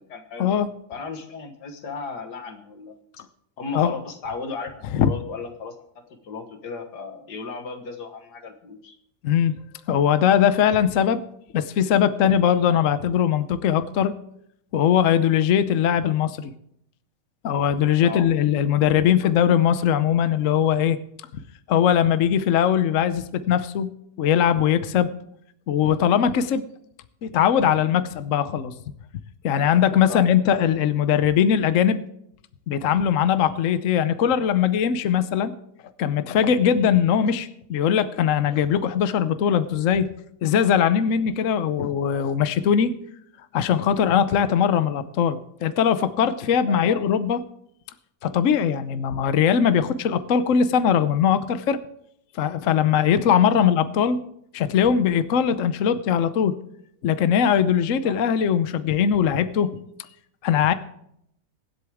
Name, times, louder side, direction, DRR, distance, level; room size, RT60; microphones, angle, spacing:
voice 1, 0.1-0.5 0.9-3.0 3.6-5.8 6.2-9.0 18.0-18.3 30.1-30.3 46.6-47.1 53.6-53.7 58.0-58.1, left 4 dB, 80° left, 6 dB, 2.0 m, -35 dB
voice 2, 9.9-11.2 11.5-14.1 14.7-16.5 17.4-21.0 21.7-23.9 24.2-25.1 25.7-26.6 27.2-28.7 29.4-32.0 32.7-35.5 36.0-40.1 40.4-42.9 43.5-47.4 48.2-51.8 52.4-54.2 54.5-56.6 57.0-59.8 60.4-60.7, left 8 dB, 60° left, 12 dB, 1.0 m, -20 dB
24.0 x 8.0 x 3.5 m, 0.73 s
omnidirectional pair, 1.7 m